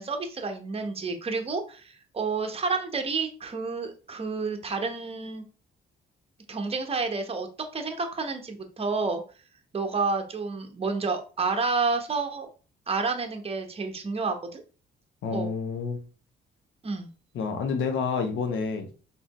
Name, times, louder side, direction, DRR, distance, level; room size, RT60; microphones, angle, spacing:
voice 1, 0.0-5.4 6.5-7.5 7.7-9.2 9.7-12.5 12.9-14.6 15.3-15.5 16.8-17.1, right 4 dB, 30° right, 5 dB, 0.9 m, -30 dB
voice 2, 15.2-16.0 17.3-18.9, left 5 dB, 75° left, 6 dB, 0.9 m, -29 dB
4.1 x 3.7 x 3.0 m, 0.36 s
cardioid pair, 90°, 20 cm